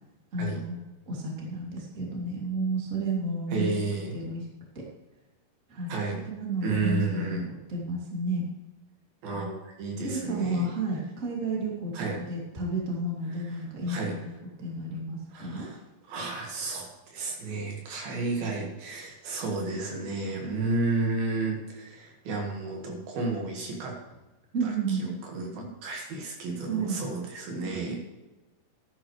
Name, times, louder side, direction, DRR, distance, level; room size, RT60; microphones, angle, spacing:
voice 1, 0.3-0.8 1.1-3.7 4.1-4.4 4.7-4.8 5.7-7.4 7.7-8.4 10.0-14.2 14.6-15.7 24.5-25.0 26.7-27.0, right 2 dB, 25° right, -2 dB, 2.4 m, -31 dB
voice 2, 3.5-4.2 5.9-6.2 6.6-7.5 9.2-10.7 11.9-12.2 13.5-14.2 15.3-15.8 16.1-24.0 24.6-28.0, right 3 dB, 70° right, 0 dB, 3.5 m, -32 dB
14.0 x 11.5 x 3.2 m, 1.1 s
omnidirectional pair, 4.6 m